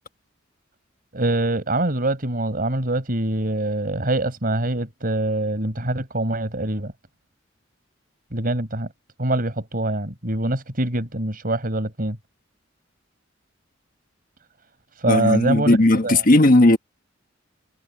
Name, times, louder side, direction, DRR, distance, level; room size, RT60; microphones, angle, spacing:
voice 1, 1.1-6.9 8.3-8.9 9.2-12.2 15.0-15.8 16.0-16.2, right 1 dB, 50° right, 5.2 m, -24 dB
voice 2, 15.1-16.8, left 2 dB, 45° left, 1.4 m, -16 dB
head